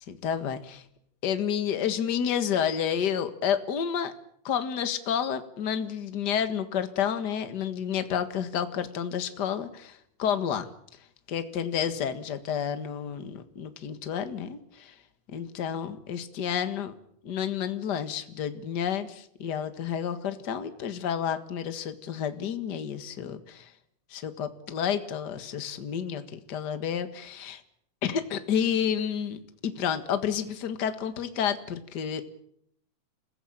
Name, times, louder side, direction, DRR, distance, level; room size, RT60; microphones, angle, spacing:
voice 1, 0.1-0.8 1.2-4.1 4.4-10.7 11.3-14.9 15.3-16.9 17.2-23.7 24.1-27.6 28.0-32.2, left 8 dB, 45° left, 10 dB, 1.5 m, -30 dB
28.0 x 16.0 x 8.8 m, 0.70 s
omnidirectional pair, 4.0 m